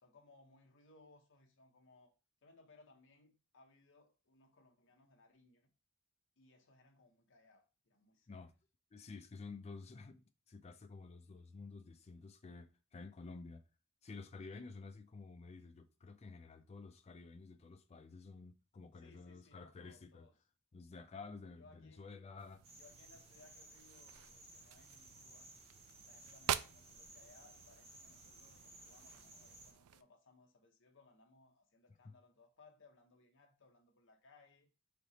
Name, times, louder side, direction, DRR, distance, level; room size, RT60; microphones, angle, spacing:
voice 1, 0.0-2.1 2.4-5.7 6.4-8.5 18.9-20.3 21.6-22.1 22.7-25.5 26.0-34.7, left 3 dB, 60° left, 0.8 m, -66 dB
voice 2, 8.9-13.6 14.0-20.3 20.7-22.6 32.0-32.1, left 4 dB, 30° left, 0.4 m, -52 dB
sound 1, 22.4-30.0, right 11 dB, 90° right, 0.3 m, -47 dB
sound 2, 22.6-29.7, right 2 dB, 30° right, 0.7 m, -58 dB
3.4 x 2.8 x 4.0 m
head